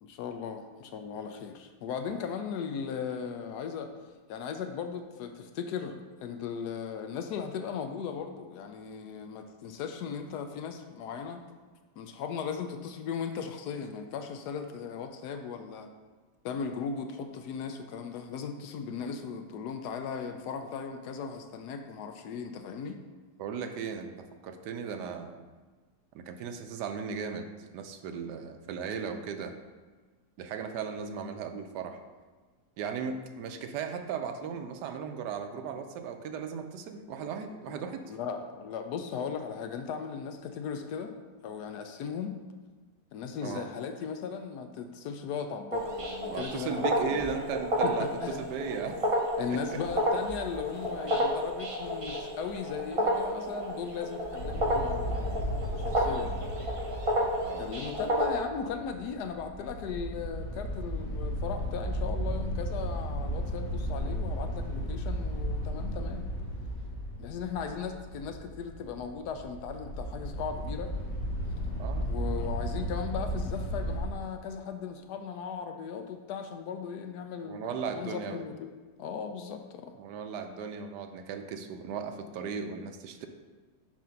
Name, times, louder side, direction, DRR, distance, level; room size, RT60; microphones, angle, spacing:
voice 1, 0.0-3.9 4.3-11.4 12.0-15.9 16.4-23.0 37.7-37.8 38.1-41.1 41.4-42.4 43.1-47.2 47.8-48.4 49.4-56.5 57.6-66.3 67.2-70.9 72.0-78.7 79.0-79.9, left 6 dB, 75° left, 6 dB, 1.1 m, -37 dB
voice 2, 23.4-25.4 26.1-27.4 27.7-29.5 30.4-32.0 32.8-38.2 43.4-43.7 46.3-49.0 49.5-49.8 57.4-57.7 71.8-72.1 77.4-78.4 80.0-83.3, right 6 dB, 80° right, 7 dB, 1.2 m, -37 dB
sound 1, 45.7-58.3, equal, 45° right, 0.4 m, -31 dB
sound 2, 54.4-74.0, equal, 45° left, 1.2 m, -35 dB
7.3 x 2.7 x 5.7 m, 1.3 s
omnidirectional pair, 1.8 m